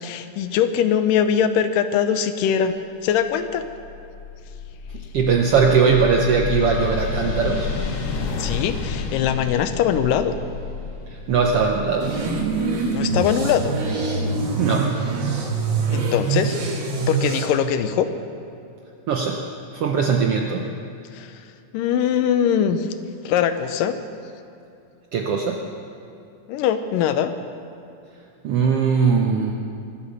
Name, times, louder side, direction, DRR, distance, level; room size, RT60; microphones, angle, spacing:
voice 1, 0.0-2.7 3.0-3.6 8.4-10.3 12.9-13.7 15.9-16.6 17.1-18.1 21.1-21.3 21.7-22.9 23.2-24.0 26.5-27.3, left 9 dB, 90° left, 9 dB, 2.5 m, -21 dB
sound 1, 3.4-14.2, left 5 dB, 55° left, 2.1 m, -31 dB
voice 2, 5.1-7.7 11.3-12.1 14.6-14.9 19.1-19.4 19.7-20.7 25.1-25.6 28.4-29.5, right 5 dB, 75° right, 2 dB, 1.4 m, -20 dB
sound 2, 12.0-17.5, right 4 dB, 45° right, 1.9 m, -24 dB
23.0 x 8.7 x 6.7 m, 2.6 s
omnidirectional pair, 3.7 m